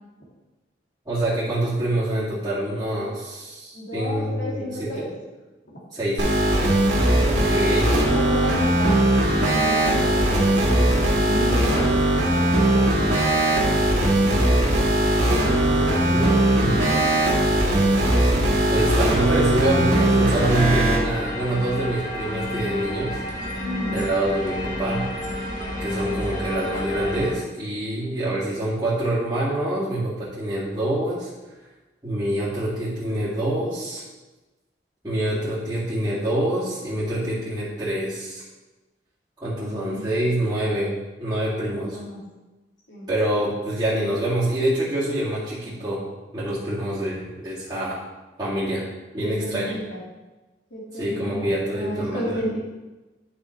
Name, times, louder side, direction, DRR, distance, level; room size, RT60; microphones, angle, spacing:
voice 1, 1.1-5.1 5.9-6.4 7.3-7.8 15.6-16.8 18.3-23.2 23.9-25.1 25.8-31.3 32.0-34.0 35.0-38.4 39.4-42.0 43.1-46.0 46.3-48.0 48.4-48.8 49.1-49.8 50.9-52.4, right 1 dB, 20° right, -13 dB, 2.2 m, -26 dB
voice 2, 3.7-5.1 5.7-5.8 7.1-9.0 9.3-14.4 16.5-17.2 23.6-24.0 39.6-40.0 41.7-42.2 42.9-43.1 49.2-50.0 50.7-52.6, equal, 75° left, -5 dB, 2.1 m, -33 dB
sound 1, 6.2-21.0, right 1 dB, 85° right, 2.2 m, -19 dB
sound 2, 20.9-27.3, left 1 dB, 45° left, 1.5 m, -30 dB
10.5 x 6.2 x 3.2 m, 1.1 s
head